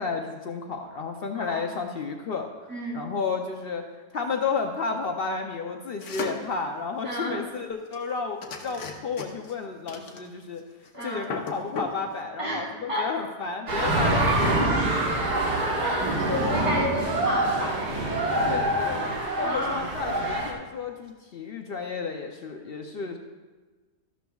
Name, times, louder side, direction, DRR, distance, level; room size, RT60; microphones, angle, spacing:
voice 1, 0.0-2.5 2.9-3.9 4.1-10.6 11.0-14.6 18.4-23.2, left 4 dB, 85° left, 3 dB, 0.5 m, -32 dB
voice 2, 1.3-1.7 2.7-3.0 7.0-7.4 10.9-11.3 12.4-13.1 14.2-15.3 15.8-17.8 19.4-19.8, equal, 15° right, -6 dB, 3.7 m, -32 dB
sound 1, 6.0-6.5 7.9-8.1 8.4-9.5 9.9-10.6 10.9-11.0 11.2-12.0, left 5 dB, 65° left, 1.4 m, -35 dB
sound 2, 13.7-20.5, right 1 dB, 65° right, 2.0 m, -25 dB
13.5 x 12.0 x 2.3 m, 1.3 s
omnidirectional pair, 1.8 m